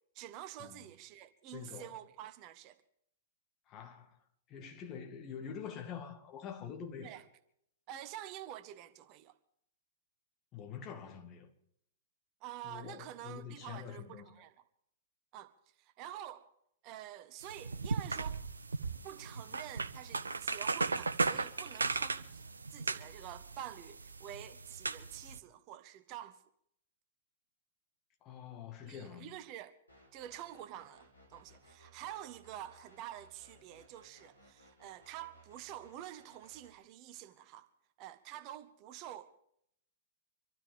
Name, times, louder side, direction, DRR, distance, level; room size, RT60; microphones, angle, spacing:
voice 1, 0.1-2.8 7.0-7.2 7.9-9.3 12.4-14.5 15.3-15.5 15.8-16.5 16.8-18.4 19.0-22.4 22.7-26.4 28.8-29.7 30.1-37.7 38.0-39.4, right 12 dB, 35° right, 0.9 m, -48 dB
voice 2, 1.5-2.0 3.7-4.2 4.5-7.1 10.5-11.5 12.6-14.3 28.2-29.3, left 7 dB, 30° left, 2.1 m, -46 dB
sound 1, 17.4-25.4, right 4 dB, 75° right, 0.7 m, -37 dB
sound 2, 29.9-36.7, right 1 dB, 90° left, 4.4 m, -62 dB
25.5 x 13.0 x 3.7 m
figure-of-eight pair, 105°, 0 cm